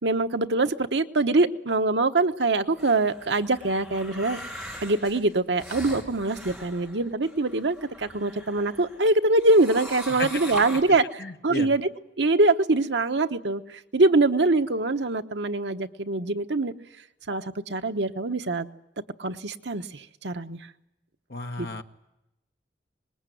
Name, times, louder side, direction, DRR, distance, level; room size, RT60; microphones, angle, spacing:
voice 1, 0.0-4.4 4.8-11.9 12.2-16.7 17.3-18.7 19.2-20.7 21.6-21.8, right 2 dB, 85° right, 7 dB, 1.2 m, -24 dB
sound 1, 2.7-9.0 9.4-10.8, equal, ahead, 4.8 m, -41 dB
voice 2, 10.1-10.4 10.9-11.7 21.3-21.8, left 3 dB, 65° left, 6 dB, 1.5 m, -34 dB
25.0 x 20.5 x 9.3 m, 0.90 s
head